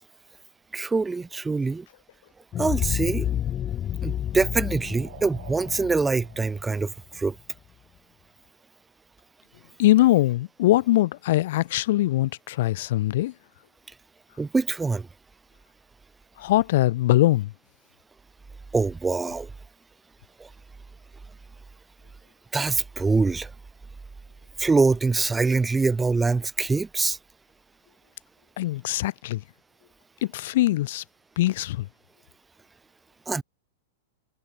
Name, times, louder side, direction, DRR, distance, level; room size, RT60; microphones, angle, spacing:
voice 1, 0.7-1.9 2.6-3.3 4.0-7.4 14.4-15.1 18.7-19.5 20.4-20.5 22.5-23.5 24.6-27.2 33.3-33.4, right 4 dB, 10° right, 0.6 m, -24 dB
sound 1, 2.5-7.3, left 10 dB, 30° left, 1.1 m, -30 dB
sound 2, 2.9-7.7, right 15 dB, 60° right, 7.7 m, -52 dB
voice 2, 9.8-13.3 16.4-17.5 28.6-29.4 30.2-31.0 31.4-31.8, left 16 dB, 60° left, 0.9 m, -22 dB
hypercardioid pair, 110°, 0 cm